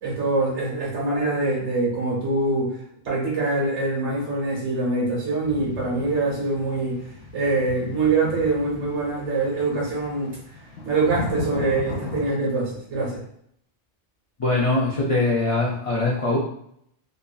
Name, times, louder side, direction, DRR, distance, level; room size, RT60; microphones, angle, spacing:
voice 1, 0.0-2.8 3.0-7.0 7.3-10.4 10.8-13.2, right 3 dB, 75° right, -4 dB, 1.3 m, -24 dB
sound 1, 5.4-12.3, left 3 dB, 85° left, 1.1 m, -36 dB
voice 2, 14.4-16.4, left 2 dB, 60° left, -4 dB, 0.3 m, -22 dB
2.9 x 2.5 x 2.2 m, 0.71 s
omnidirectional pair, 1.2 m